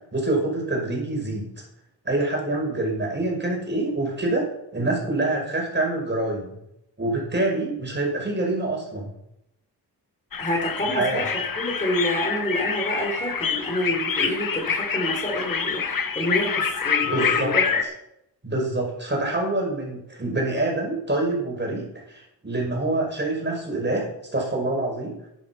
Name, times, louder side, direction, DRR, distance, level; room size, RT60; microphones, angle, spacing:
voice 1, 0.1-1.6 2.0-4.5 4.7-6.6 7.0-9.1 10.9-11.2 17.0-17.5 18.4-25.2, right 2 dB, 25° right, -1 dB, 5.7 m, -26 dB
sound 1, 10.3-17.8, left 6 dB, 55° left, 1.4 m, -26 dB
voice 2, 10.4-11.3 11.6-17.8 19.1-19.2, equal, 20° left, 0 dB, 3.8 m, -28 dB
11.0 x 10.5 x 5.9 m, 0.80 s
cardioid pair, 85°, 40 cm